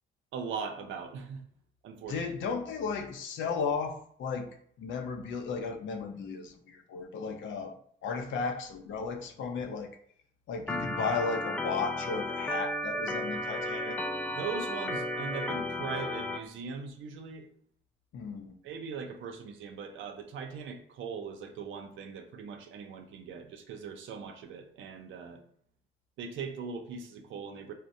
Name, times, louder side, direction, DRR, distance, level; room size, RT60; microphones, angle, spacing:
voice 1, 0.3-1.4 1.8-2.2 14.3-17.5 18.6-25.4 26.2-27.7, right 5 dB, 75° right, 5 dB, 0.6 m, -40 dB
voice 2, 2.1-4.5 4.8-9.9 10.5-14.0 18.1-18.5, left 5 dB, 75° left, 5 dB, 0.6 m, -35 dB
Organ, 10.7-16.4, left 1 dB, 5° left, 0.3 m, -34 dB
4.3 x 2.1 x 2.6 m, 0.63 s
cardioid pair, 90°, 20 cm